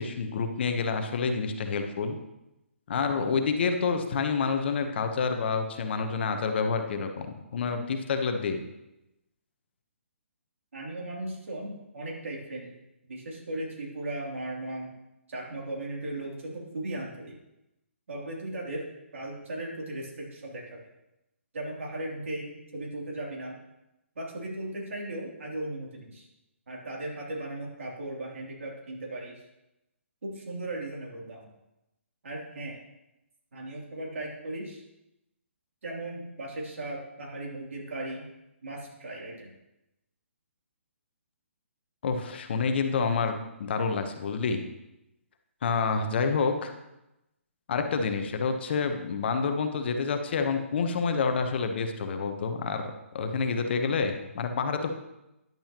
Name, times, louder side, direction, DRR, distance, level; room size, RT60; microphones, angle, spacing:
voice 1, 0.0-2.2 2.9-8.6 42.0-44.6 45.6-46.7 47.7-54.9, left 5 dB, 55° left, 6 dB, 1.0 m, -28 dB
voice 2, 10.7-12.7 13.1-14.9 15.3-17.4 18.1-18.8 19.1-20.8 21.5-23.6 24.1-26.3 26.7-29.4 30.2-31.5 32.2-32.8 33.5-34.8 35.8-38.3 38.6-39.5, right 1 dB, 75° right, -2 dB, 3.0 m, -37 dB
10.5 x 8.6 x 3.0 m, 0.92 s
hypercardioid pair, 150°, 7 cm